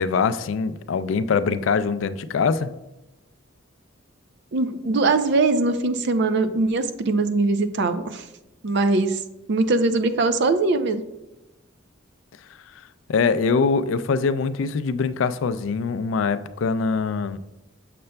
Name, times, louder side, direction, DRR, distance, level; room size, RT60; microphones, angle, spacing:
voice 1, 0.0-2.7 12.8-12.9 13.1-17.4, left 5 dB, 75° left, 13 dB, 0.4 m, -23 dB
voice 2, 4.5-8.2 8.6-9.2 9.5-11.0, right 3 dB, 65° right, 9 dB, 0.5 m, -21 dB
6.7 x 6.5 x 2.2 m, 0.97 s
head